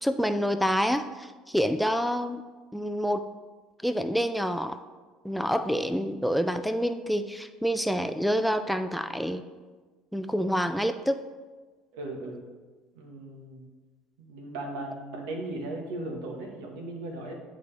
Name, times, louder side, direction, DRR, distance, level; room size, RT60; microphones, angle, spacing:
voice 1, 0.0-2.4 2.7-3.3 3.8-4.8 5.2-9.4 10.1-11.2, equal, ahead, 9 dB, 0.3 m, -27 dB
voice 2, 11.9-12.4 12.9-13.7 14.2-17.3, right 2 dB, 85° right, 2 dB, 1.3 m, -37 dB
10.0 x 4.0 x 3.3 m, 1.4 s
supercardioid pair, 105°, 0 cm